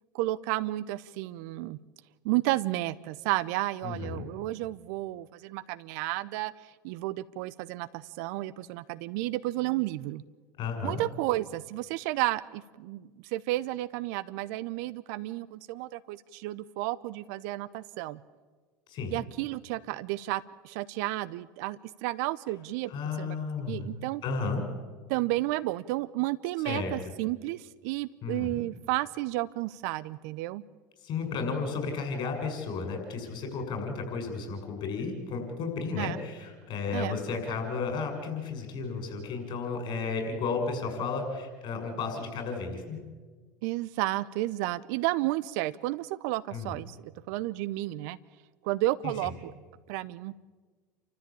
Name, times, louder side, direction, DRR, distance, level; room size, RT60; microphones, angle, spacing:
voice 1, 0.1-1.8 2.2-10.2 10.8-18.2 19.1-22.9 23.2-23.4 23.7-24.2 25.1-30.6 36.0-36.2 36.9-37.2 43.6-48.2 48.6-49.5 49.9-50.4, right 17 dB, 65° right, 15 dB, 0.7 m, -32 dB
voice 2, 3.8-4.3 10.6-11.0 18.9-19.1 22.9-23.9 24.2-24.6 26.6-26.9 28.2-28.6 31.0-43.0 46.5-46.7 49.0-49.3, left 4 dB, 50° left, 4 dB, 6.9 m, -33 dB
28.5 x 14.0 x 8.7 m, 1.4 s
hypercardioid pair, 80°, 10 cm